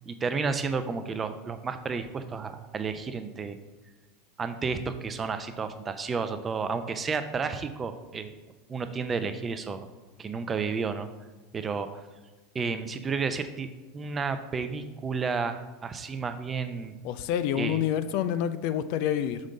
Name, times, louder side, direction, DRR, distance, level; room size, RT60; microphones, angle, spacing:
voice 1, 0.1-3.6 4.4-8.4 8.7-9.9 10.2-11.1 11.5-12.0 12.5-13.7 13.9-17.0 17.6-17.8, right 5 dB, 25° right, 9 dB, 0.6 m, -31 dB
voice 2, 17.0-19.4, left 10 dB, 60° left, 12 dB, 0.4 m, -28 dB
6.3 x 5.2 x 4.0 m, 1.2 s
hypercardioid pair, 90°, 0 cm